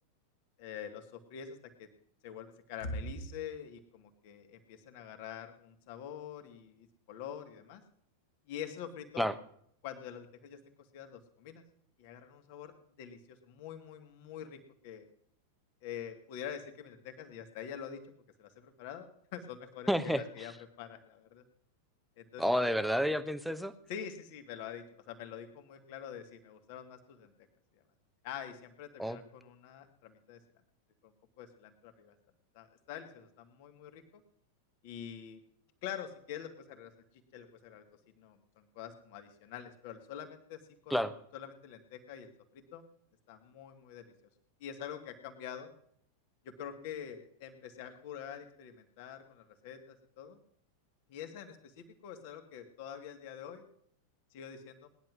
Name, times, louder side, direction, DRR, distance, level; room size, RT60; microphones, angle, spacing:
voice 1, 0.6-1.9 2.2-7.8 8.5-9.3 9.8-10.6 10.9-11.6 12.0-12.7 13.0-15.1 15.8-18.0 18.4-19.1 19.3-20.5 20.8-21.4 22.2-22.4 23.9-27.3 28.2-30.4 31.0-31.1 31.4-32.1 32.5-34.0 34.8-35.4 35.8-36.9 37.3-37.8 38.2-40.6 40.9-41.0 41.3-42.8 43.3-44.1 44.6-45.7 46.4-50.4 51.1-53.6 54.3-54.9, left 8 dB, 50° left, 6 dB, 2.3 m, -45 dB
voice 2, 19.9-20.5 22.4-23.7 29.0-29.2 40.9-41.1, equal, ahead, 12 dB, 1.1 m, -30 dB
19.5 x 11.0 x 6.2 m, 0.66 s
figure-of-eight pair, 90°, 0 cm